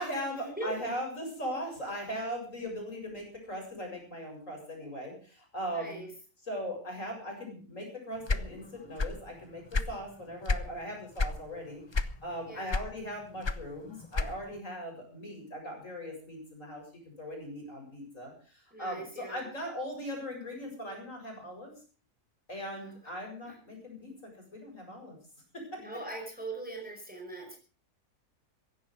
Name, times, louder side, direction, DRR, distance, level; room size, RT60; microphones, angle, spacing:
voice 1, 0.0-6.0 6.5-21.7 22.5-24.1 24.5-25.2 25.5-25.8, equal, 55° left, 1 dB, 8.1 m, -39 dB
voice 2, 5.7-6.1 12.5-12.8 18.7-19.5 22.7-23.0 23.4-23.6 25.8-27.6, right 2 dB, 5° right, 2 dB, 5.3 m, -40 dB
sound 1, 8.2-9.3 9.6-10.7 11.2-11.4 11.9-12.4 12.7-14.6, left 3 dB, 30° left, 0.5 m, -30 dB
16.5 x 15.0 x 5.0 m, 0.39 s
omnidirectional pair, 1.6 m